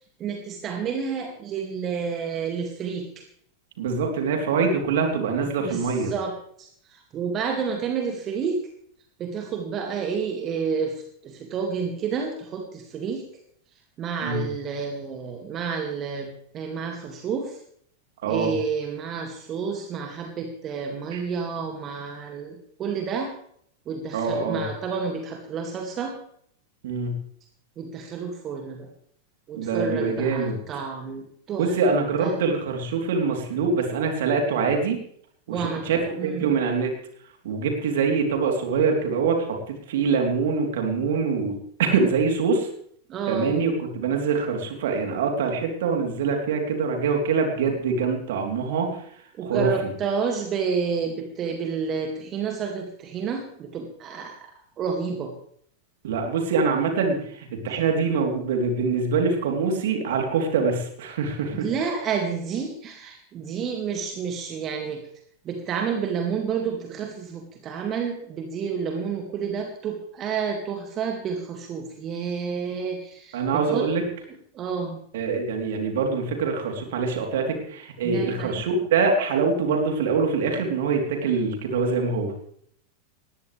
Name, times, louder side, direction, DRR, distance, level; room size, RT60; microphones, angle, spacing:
voice 1, 0.2-3.2 5.6-8.6 9.2-10.9 11.2-13.2 14.0-17.6 18.3-23.3 23.9-26.2 27.8-28.9 29.5-31.8 32.2-32.3 35.5-35.9 36.2-36.5 43.1-43.5 49.4-54.5 54.8-55.3 61.5-65.0 65.4-73.9 74.5-75.0 78.0-78.6, right 6 dB, 30° right, 3 dB, 2.3 m, -30 dB
voice 2, 3.8-6.1 14.2-14.4 18.2-18.5 21.1-21.2 24.1-24.7 26.8-27.2 29.5-30.6 31.6-35.0 35.5-35.6 35.9-36.9 37.4-42.7 43.3-48.9 49.4-49.9 56.0-61.7 73.3-74.0 75.1-82.3, right 5 dB, 55° right, 2 dB, 3.6 m, -24 dB
20.0 x 16.0 x 3.4 m, 0.64 s
figure-of-eight pair, 90°, 0 cm